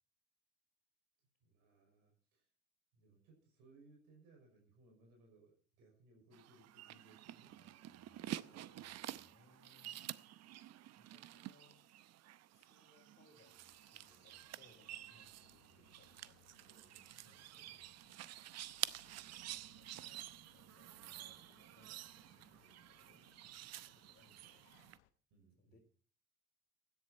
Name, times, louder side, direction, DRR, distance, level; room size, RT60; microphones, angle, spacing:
voice 1, 1.4-2.5 2.9-7.6 15.6-15.9 16.9-17.8 20.9-21.4 24.2-24.4 25.3-25.8, right 2 dB, 70° right, 1 dB, 5.6 m, -67 dB
sound 1, 6.3-25.0, right 13 dB, 50° right, 0.7 m, -50 dB
voice 2, 7.5-10.1 10.5-11.8 12.5-18.5 18.9-25.1 25.6-25.8, left 3 dB, 30° left, -3 dB, 3.9 m, -71 dB
sound 2, 13.7-25.1, left 11 dB, 85° left, 1.0 m, -72 dB
16.0 x 10.5 x 4.1 m, 0.40 s
hypercardioid pair, 65°, 34 cm